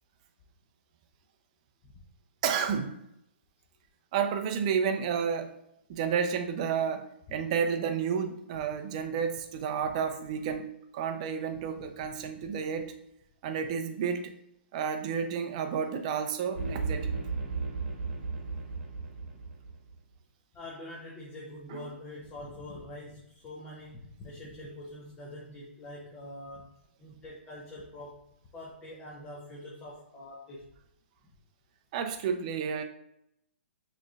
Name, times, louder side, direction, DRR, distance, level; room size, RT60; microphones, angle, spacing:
voice 1, 2.4-3.0 4.1-5.5 5.9-10.7 10.9-12.9 13.4-14.3 14.7-17.1 31.9-32.8, right 7 dB, 35° right, 7 dB, 0.5 m, -31 dB
voice 2, 11.8-12.1 20.5-26.7 27.0-28.3 28.5-30.7, left 1 dB, 15° left, -4 dB, 0.6 m, -45 dB
sound 1, 16.6-20.0, right 4 dB, 55° right, 1.0 m, -34 dB
6.2 x 3.1 x 2.4 m, 0.78 s
hypercardioid pair, 160°, 6 cm